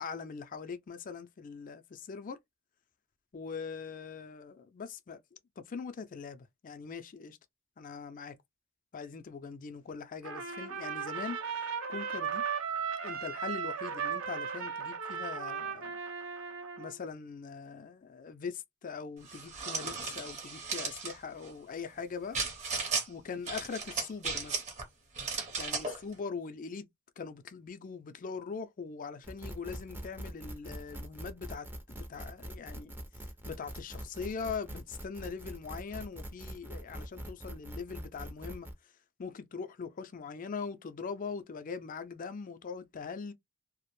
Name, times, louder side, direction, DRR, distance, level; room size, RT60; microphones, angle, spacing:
voice 1, 0.0-2.4 3.3-5.2 5.6-7.4 7.8-8.3 8.9-11.4 11.9-12.4 13.0-16.0 16.8-22.4 23.1-24.6 25.6-26.9 27.2-32.9 33.4-38.7 39.2-43.3, left 5 dB, 40° left, 0.4 m, -41 dB
Trumpet, 10.2-17.0, right 6 dB, 70° right, 0.7 m, -36 dB
sound 1, 19.3-21.1 22.3-23.1 23.5-24.8 25.1-26.0, right 4 dB, 35° right, 0.8 m, -35 dB
sound 2, 29.2-38.7, equal, 10° right, 0.5 m, -43 dB
2.4 x 2.0 x 3.0 m
head